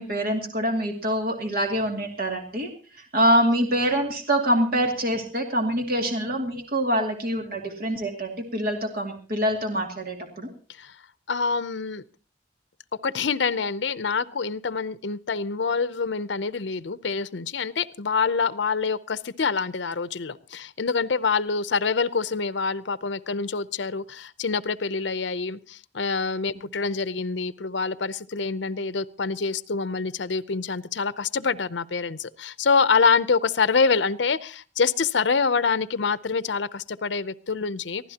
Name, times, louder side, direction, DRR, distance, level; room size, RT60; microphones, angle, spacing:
voice 1, 0.0-2.7 3.0-10.5, equal, 55° right, 2 dB, 2.5 m, -25 dB
voice 2, 11.3-12.0 13.0-38.1, left 5 dB, 70° left, 14 dB, 0.7 m, -26 dB
23.0 x 15.5 x 2.9 m, 0.39 s
head